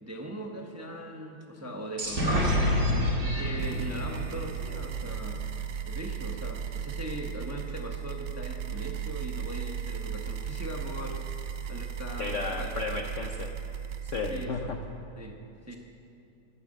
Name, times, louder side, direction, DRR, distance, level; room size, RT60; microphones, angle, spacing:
voice 1, 0.0-5.5 5.8-12.8 14.3-14.7 15.2-15.8, right 1 dB, 15° right, 1 dB, 0.7 m, -40 dB
sound 1, 2.0-5.7, equal, 50° right, 2.9 m, -28 dB
sound 2, 3.6-14.5, right 8 dB, 70° right, 1.3 m, -36 dB
voice 2, 12.2-13.5 14.0-14.8, left 4 dB, 60° left, 4 dB, 0.8 m, -33 dB
15.0 x 11.5 x 6.5 m, 2.7 s
omnidirectional pair, 2.0 m